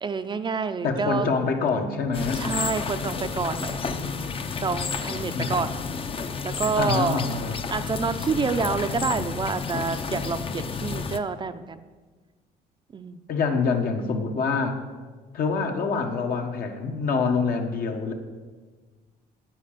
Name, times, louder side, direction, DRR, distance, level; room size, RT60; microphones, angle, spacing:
voice 1, 0.0-1.3 2.3-5.7 6.4-7.2 7.7-11.8 12.9-13.2, right 5 dB, 25° right, 10 dB, 0.5 m, -28 dB
voice 2, 0.8-2.4 5.3-5.7 6.8-7.6 13.3-14.8 15.3-18.1, left 5 dB, 60° left, 4 dB, 1.4 m, -26 dB
sound 1, 2.1-11.2, left 5 dB, 30° left, 0.7 m, -31 dB
9.5 x 9.0 x 6.7 m, 1.4 s
cardioid pair, 110°, 17 cm